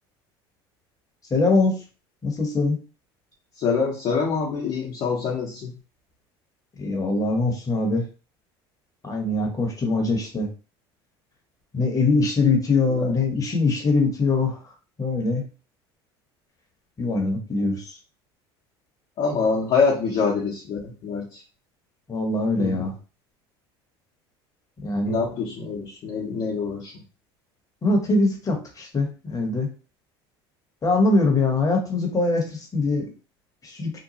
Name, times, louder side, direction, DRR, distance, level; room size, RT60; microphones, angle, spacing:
voice 1, 1.3-1.7 2.2-2.8 6.8-8.0 9.0-10.5 11.7-14.6 15.0-15.4 17.0-18.0 22.1-22.9 24.8-25.2 27.8-29.7 30.8-33.1 33.6-33.9, left 3 dB, 25° left, 2 dB, 1.1 m, -22 dB
voice 2, 3.6-5.7 13.0-13.1 19.2-21.4 22.6-22.8 25.1-26.9, left 5 dB, 50° left, -3 dB, 0.9 m, -25 dB
2.9 x 2.2 x 2.8 m, 0.35 s
hypercardioid pair, 85°, 13 cm